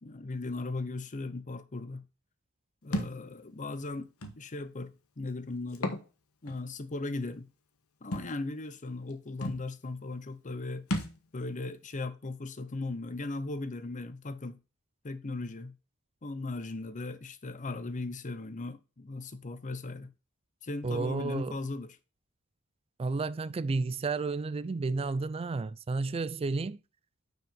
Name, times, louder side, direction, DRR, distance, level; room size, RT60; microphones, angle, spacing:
voice 1, 0.0-2.0 2.8-6.0 6.4-7.5 8.0-10.9 11.3-14.6 15.0-15.7 16.2-20.1 20.6-22.0, left 2 dB, 35° left, 0.7 m, -38 dB
Thump thud, 2.9-3.2 4.2-4.3 5.7-6.0 6.5-6.6 8.1-8.3 9.1-9.2 9.4-9.6 10.9-11.2, left 1 dB, 90° left, 1.2 m, -33 dB
voice 2, 20.8-21.6 23.0-26.8, right 3 dB, 25° right, 0.3 m, -31 dB
6.3 x 4.9 x 5.1 m
head